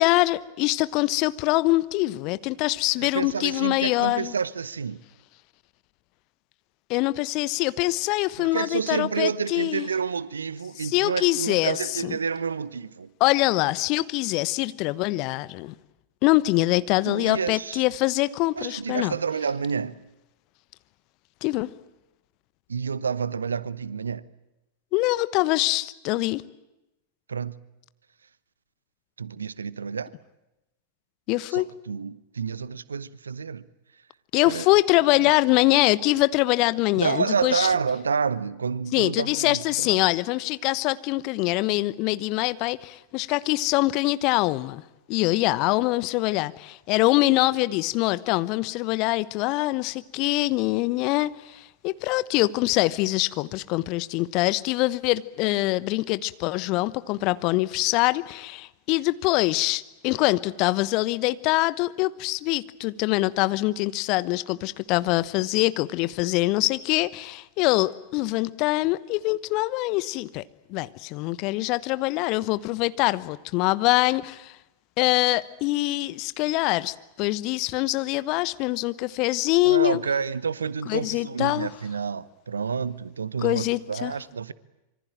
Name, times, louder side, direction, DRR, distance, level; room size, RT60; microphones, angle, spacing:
voice 1, 0.0-4.3 6.9-9.9 10.8-11.8 12.0-12.1 13.2-15.7 16.2-19.1 21.4-21.7 24.9-26.4 31.3-31.7 34.3-37.7 38.9-44.8 45.1-70.4 70.7-74.5 75.0-80.0 80.9-81.7 83.4-84.1, left 20 dB, 40° left, 1.0 m, -24 dB
voice 2, 3.0-5.0 8.4-13.1 17.0-17.8 18.5-20.0 22.7-24.2 27.3-27.6 29.2-30.1 31.5-33.6 34.5-34.7 35.2-35.3 37.0-40.0 79.6-84.5, right 6 dB, 70° right, 1.0 m, -29 dB
26.0 x 24.5 x 9.0 m
figure-of-eight pair, 90°, 0 cm